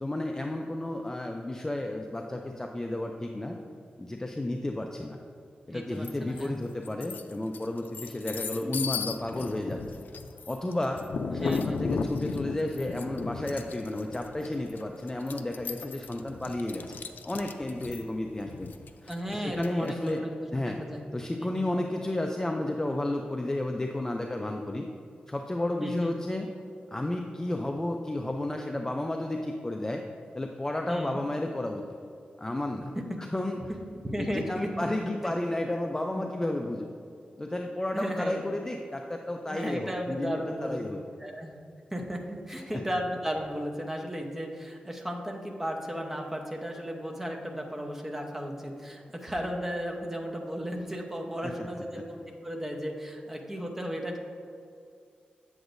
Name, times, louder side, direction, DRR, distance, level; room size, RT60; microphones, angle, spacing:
voice 1, 0.0-3.6 4.0-5.2 5.7-10.0 10.5-11.0 11.3-18.7 19.0-20.3 20.5-20.8 21.1-24.9 25.3-26.5 26.9-30.0 30.3-31.8 32.4-32.9 33.2-33.6 34.2-36.9 37.4-41.0 42.7-42.8 51.4-51.7 51.9-52.0, left 1 dB, 15° left, 3 dB, 0.4 m, -32 dB
voice 2, 5.7-6.6 11.3-11.8 19.1-21.0 21.4-21.7 25.8-26.1 30.9-31.2 34.0-35.3 36.2-36.3 37.9-38.4 39.5-40.8 41.2-41.6 41.9-54.2, equal, 10° right, 1 dB, 0.8 m, -35 dB
sound 1, 6.0-6.5 6.9-20.1, left 5 dB, 85° left, 0.4 m, -36 dB
sound 2, 21.6-24.5 28.8-31.0, equal, 75° right, 1.7 m, -57 dB
7.9 x 7.9 x 2.6 m, 2.4 s
wide cardioid pair, 125°, 3 cm